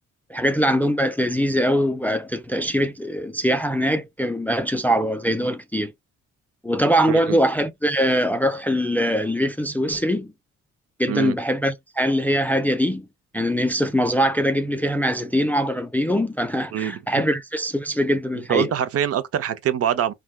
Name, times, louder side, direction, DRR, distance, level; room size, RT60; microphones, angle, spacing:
voice 1, 0.3-5.9 6.6-10.3 11.0-13.1 13.3-18.7, equal, 5° left, 0.3 m, -22 dB
voice 2, 7.1-7.4 11.1-11.4 16.7-17.2 18.5-20.1, right 10 dB, 50° right, 0.5 m, -24 dB
3.3 x 2.3 x 2.3 m
cardioid pair, 90°, 30 cm